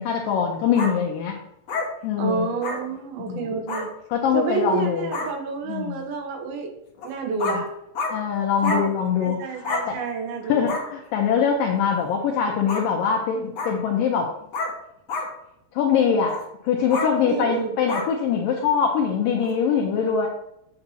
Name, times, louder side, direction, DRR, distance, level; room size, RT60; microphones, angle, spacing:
voice 1, 0.0-1.4 2.0-2.5 3.3-3.6 4.1-5.1 5.7-6.0 7.4-7.6 8.1-10.0 10.5-14.3 15.8-16.4 16.6-20.3, left 7 dB, 75° left, 1 dB, 2.1 m, -23 dB
sound 1, 0.7-0.9 1.7-1.9 2.6-2.8 3.7-3.8 4.7-4.8 5.1-5.3 7.0-7.1 7.4-7.6 7.9-8.1 8.6-8.8 9.6-9.8 10.7-10.8 12.7-12.8 13.5-13.7 14.5-14.7 15.1-15.3 16.2-16.4 16.9-17.1 17.9-18.1 19.4-19.5, left 3 dB, 60° left, 1.8 m, -28 dB
voice 2, 2.2-3.9 4.3-6.7 7.0-7.7 8.6-8.9 9.2-10.7 17.3-17.8, right 5 dB, 75° right, 3 dB, 2.6 m, -29 dB
8.1 x 8.0 x 2.8 m, 0.80 s
omnidirectional pair, 4.7 m